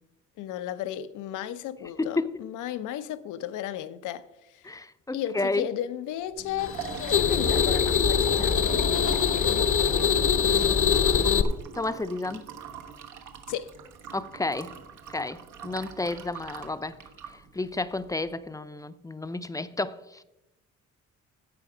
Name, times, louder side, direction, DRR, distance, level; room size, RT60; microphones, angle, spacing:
voice 1, 0.4-4.3 4.5-4.7 5.1-6.8 7.1-8.6 13.5-13.7, left 11 dB, 90° left, 0.7 m, -34 dB
voice 2, 2.0-2.3 4.6-5.7 11.7-12.5 14.1-14.7 15.1-17.0 17.3-20.2, left 2 dB, 10° left, 0.5 m, -31 dB
Liquid, 6.4-18.3, right 6 dB, 75° right, 1.2 m, -42 dB
sound 1, 6.6-11.4, left 7 dB, 45° left, 0.8 m, -23 dB
11.0 x 7.7 x 4.9 m
cardioid pair, 90°, 30 cm